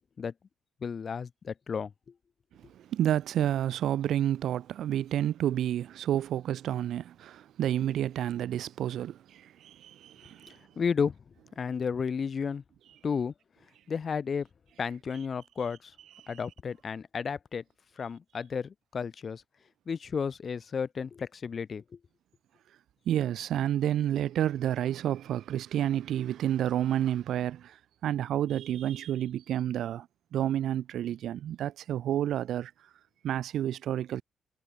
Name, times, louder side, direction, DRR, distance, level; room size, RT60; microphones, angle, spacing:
voice 1, 0.8-1.9 10.5-11.2 11.6-12.6 13.0-13.3 13.9-14.5 14.8-15.9 16.3-17.6 18.0-19.4 19.9-21.8, left 6 dB, 45° left, 7.1 m, -32 dB
voice 2, 2.5-10.7 16.1-16.4 23.1-32.9 33.2-34.2, right 11 dB, 75° right, 2.4 m, -30 dB
cardioid pair, 90°, 0 cm